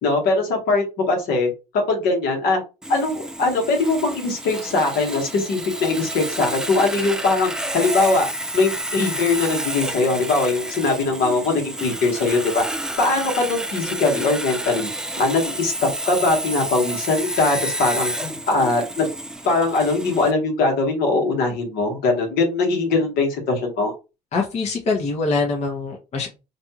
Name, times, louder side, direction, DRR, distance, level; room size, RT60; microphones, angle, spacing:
voice 1, 0.0-1.5 1.9-2.6 2.9-8.3 8.5-12.6 13.0-14.9 15.2-19.1 19.4-23.9, left 3 dB, 70° left, 1 dB, 1.1 m, -21 dB
Sawing, 2.8-20.3, right 1 dB, 5° right, 0.3 m, -30 dB
voice 2, 24.3-26.3, left 3 dB, 40° left, 0 dB, 0.8 m, -23 dB
2.6 x 2.3 x 2.8 m, 0.28 s
supercardioid pair, 75°, 16 cm